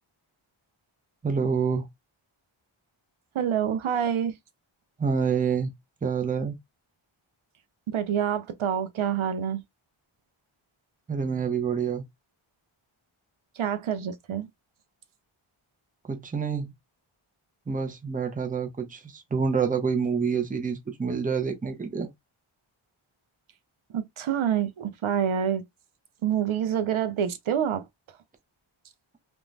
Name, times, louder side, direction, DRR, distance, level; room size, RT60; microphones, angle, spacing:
voice 1, 1.2-1.9 5.0-5.7 6.0-6.5 11.1-12.0 16.1-16.7 17.7-22.1, right 6 dB, 15° right, 0.5 m, -27 dB
voice 2, 3.3-4.4 7.9-9.6 13.6-14.5 23.9-25.6 26.2-27.8, right 8 dB, 75° right, 0.6 m, -27 dB
2.6 x 2.1 x 3.1 m
wide cardioid pair, 105°, 50 cm